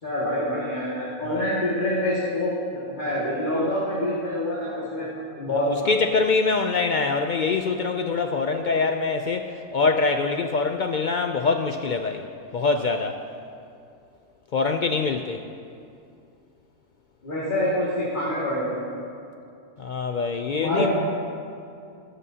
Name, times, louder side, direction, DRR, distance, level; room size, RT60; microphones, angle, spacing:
voice 1, 0.0-5.1 5.4-5.7 17.2-18.9 20.6-20.9, left 1 dB, 35° left, -8 dB, 2.1 m, -26 dB
voice 2, 5.5-12.2 12.5-13.2 14.5-15.4 19.8-20.9, left 4 dB, 75° left, 5 dB, 0.4 m, -24 dB
15.5 x 12.5 x 2.8 m, 2.5 s
omnidirectional pair, 1.4 m